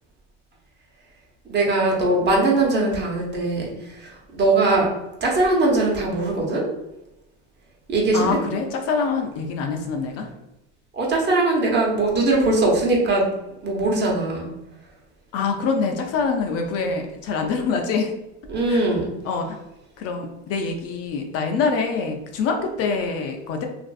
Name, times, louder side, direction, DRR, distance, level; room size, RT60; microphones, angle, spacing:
voice 1, 1.5-3.7 4.0-4.9 5.2-6.6 7.9-8.4 10.9-13.3 13.6-14.5 18.5-19.1, right 2 dB, 35° right, -2 dB, 0.9 m, -20 dB
voice 2, 8.1-10.3 15.3-18.1 18.7-18.9 19.2-19.6 20.0-23.7, left 4 dB, 50° left, 3 dB, 0.5 m, -25 dB
2.5 x 2.4 x 2.3 m, 0.95 s
supercardioid pair, 105°, 32 cm